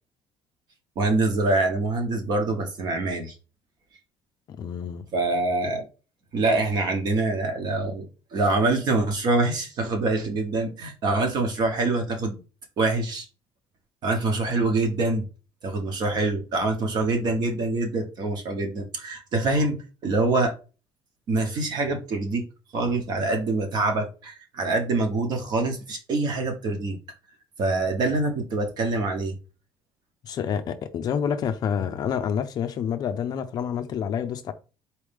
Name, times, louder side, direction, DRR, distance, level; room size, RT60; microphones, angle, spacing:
voice 1, 0.9-3.4 5.1-5.8 6.3-12.4 12.8-13.3 14.0-15.3 15.6-20.5 21.3-22.5 22.7-27.0 27.6-29.4, right 2 dB, 45° right, 1.1 m, -25 dB
voice 2, 4.5-5.0 30.2-34.5, left 8 dB, 40° left, 0.4 m, -28 dB
4.4 x 3.2 x 3.4 m
cardioid pair, 175°, 10 cm